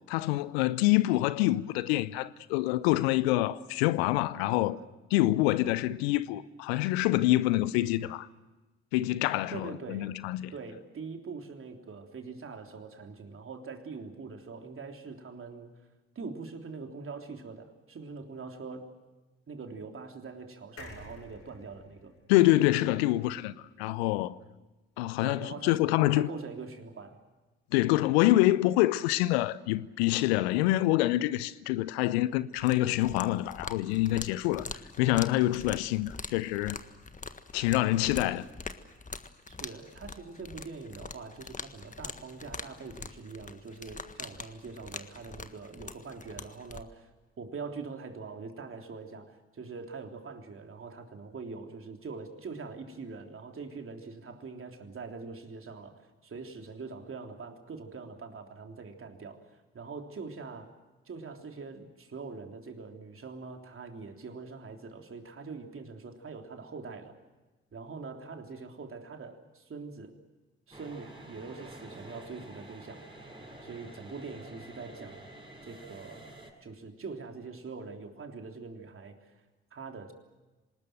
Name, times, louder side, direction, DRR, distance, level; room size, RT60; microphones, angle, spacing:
voice 1, 0.0-4.8 5.1-8.3 8.9-10.5 22.3-24.4 25.0-26.3 27.7-34.7 35.0-36.8 37.5-38.5, left 16 dB, 75° left, 0.7 m, -26 dB
voice 2, 9.5-10.1 10.5-15.7 16.2-18.9 19.5-22.1 25.2-25.8 26.1-27.2 39.5-47.1 47.4-59.4 59.7-60.7 61.1-67.1 67.7-70.2 70.7-73.0 73.6-75.3 75.6-76.3 76.6-79.3 79.7-80.1, right 4 dB, 40° right, 3.5 m, -43 dB
sound 1, 20.8-24.2 24.6-24.7 24.9-25.0, left 3 dB, 50° left, 7.3 m, -52 dB
sound 2, 32.5-46.8, left 4 dB, 25° left, 1.6 m, -44 dB
sound 3, 70.7-76.5, right 1 dB, 15° right, 7.4 m, -48 dB
26.5 x 20.0 x 7.7 m
figure-of-eight pair, 45°, 32 cm